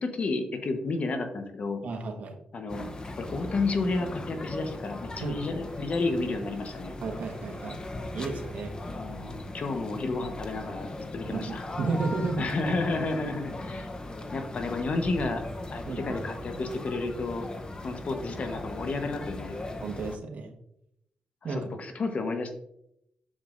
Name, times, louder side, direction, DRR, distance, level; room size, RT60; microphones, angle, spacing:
voice 1, 0.0-1.8 2.5-2.9 3.2-6.9 8.9-11.7 12.4-13.9 14.3-15.4 15.7-17.5 17.8-19.6 21.4-22.5, left 3 dB, 55° left, 6 dB, 1.1 m, -31 dB
voice 2, 1.8-2.4 5.2-5.4 7.0-7.8 8.1-8.8 11.2-12.5 15.8-16.2 19.8-20.5 21.4-21.7, right 4 dB, 70° right, 3 dB, 1.3 m, -33 dB
sound 1, 2.7-20.2, left 2 dB, 30° left, 0.8 m, -39 dB
7.4 x 6.9 x 2.6 m, 0.78 s
cardioid pair, 80°, 3 cm